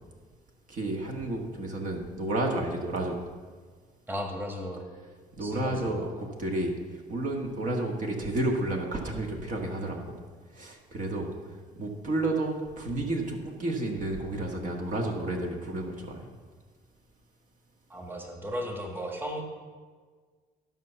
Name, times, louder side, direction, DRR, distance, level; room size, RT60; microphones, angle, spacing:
voice 1, 0.7-3.2 5.3-10.2 10.5-11.3 11.7-16.3, right 2 dB, 50° right, 1 dB, 1.7 m, -31 dB
voice 2, 4.1-4.9 5.4-5.9 17.9-19.4, equal, 15° right, 1 dB, 1.7 m, -35 dB
12.5 x 5.6 x 6.9 m, 1.5 s
cardioid pair, 110°, 17 cm